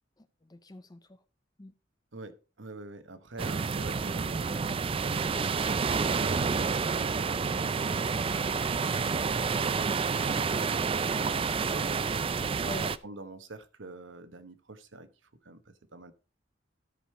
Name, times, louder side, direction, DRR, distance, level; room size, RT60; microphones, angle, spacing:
voice 1, 0.2-1.2 1.6-1.7 12.6-13.0, left 2 dB, 20° left, 0.6 m, -44 dB
voice 2, 2.1-11.9 13.0-16.1, right 2 dB, 80° right, 1.1 m, -47 dB
sound 1, 3.4-13.0, right 5 dB, 30° right, 0.4 m, -29 dB
13.0 x 5.1 x 4.4 m
head